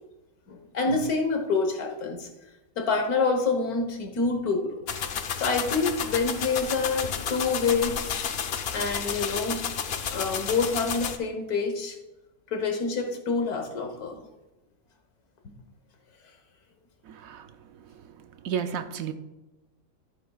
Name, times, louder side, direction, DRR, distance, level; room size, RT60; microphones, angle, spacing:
voice 1, 0.5-2.3 2.8-4.8 5.4-8.0 8.7-9.6 10.1-12.0 12.5-14.3 15.4-15.5, left 4 dB, 85° left, 4 dB, 1.7 m, -27 dB
sound 1, 4.9-11.2, left 7 dB, 55° left, 0.7 m, -31 dB
voice 2, 17.1-17.5 18.4-19.1, right 8 dB, 75° right, 9 dB, 1.1 m, -31 dB
13.5 x 8.1 x 2.3 m, 1.1 s
omnidirectional pair, 1.5 m